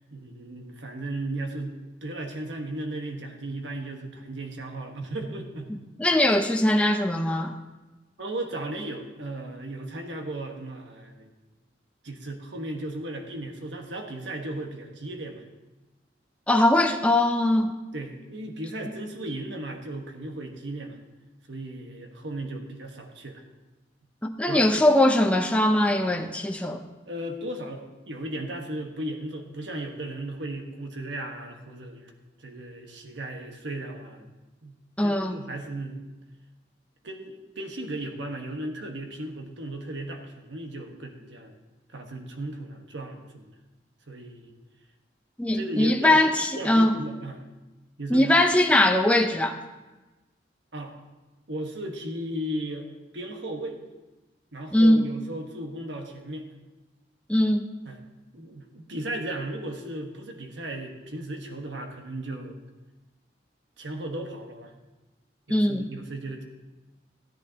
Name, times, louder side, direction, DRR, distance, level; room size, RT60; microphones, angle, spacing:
voice 1, 0.1-5.8 8.2-11.3 12.0-15.4 17.9-21.0 21.5-23.4 24.5-24.8 27.1-32.1 32.4-34.3 34.6-36.0 37.0-41.5 41.9-43.5 44.1-44.5 45.5-46.2 46.5-47.4 48.0-48.4 50.7-50.9 51.5-52.9 53.1-53.8 54.5-56.5 57.9-58.0 58.3-62.6 63.8-64.8 65.5-66.4, right 1 dB, 90° right, 3 dB, 1.3 m, -36 dB
voice 2, 6.0-7.5 16.5-17.7 24.2-26.8 35.0-35.4 45.4-46.9 48.1-49.6 54.7-55.0 57.3-57.7 65.5-65.9, left 1 dB, 5° left, 4 dB, 0.6 m, -21 dB
14.5 x 10.5 x 2.9 m, 1.1 s
head